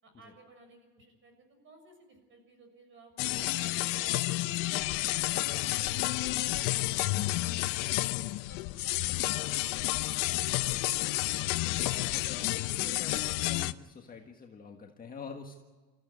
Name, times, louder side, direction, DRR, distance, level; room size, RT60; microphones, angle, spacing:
voice 1, 0.0-1.3 1.6-8.0 8.5-9.0 9.3-10.8, right 2 dB, 30° right, 5 dB, 6.7 m, -56 dB
sound 1, 3.2-13.7, left 19 dB, 60° left, 0.8 m, -30 dB
voice 2, 11.1-15.6, left 5 dB, 25° left, 2 dB, 1.6 m, -47 dB
27.5 x 15.0 x 9.8 m, 1.3 s
cardioid pair, 165°, 38 cm